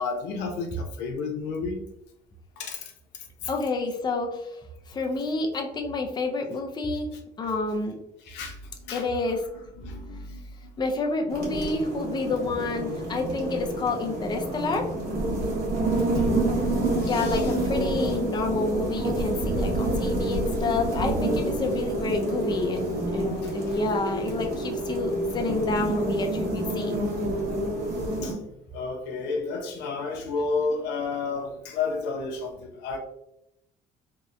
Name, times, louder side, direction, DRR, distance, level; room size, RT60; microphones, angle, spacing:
voice 1, 0.0-1.8 2.6-2.9 8.2-8.6 8.9-9.4 9.8-10.4 15.8-16.3 16.7-17.5 18.0-18.1 23.4-23.5 28.2-28.4 28.7-33.0, left 4 dB, 90° left, 4 dB, 0.5 m, -32 dB
voice 2, 3.5-4.6 4.9-7.1 7.4-8.0 8.9-9.4 10.8-14.9 16.7-27.0, left 3 dB, 25° left, 3 dB, 0.4 m, -29 dB
sound 1, 11.3-28.3, right 1 dB, 65° right, 1.1 m, -28 dB
2.7 x 2.1 x 2.4 m, 0.81 s
cardioid pair, 110°, 17 cm